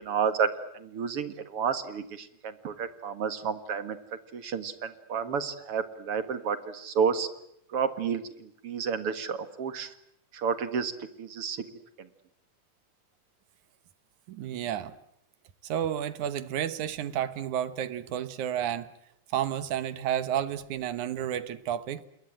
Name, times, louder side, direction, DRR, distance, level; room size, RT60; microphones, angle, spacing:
voice 1, 0.0-4.0 4.3-7.3 7.7-9.9 10.3-10.9 11.2-11.6 12.0-12.1, right 6 dB, 50° right, 12 dB, 2.3 m, -31 dB
voice 2, 14.3-15.0 15.6-18.9 19.3-22.0, right 10 dB, 75° right, 14 dB, 2.6 m, -31 dB
28.0 x 22.0 x 8.9 m, 0.75 s
omnidirectional pair, 3.5 m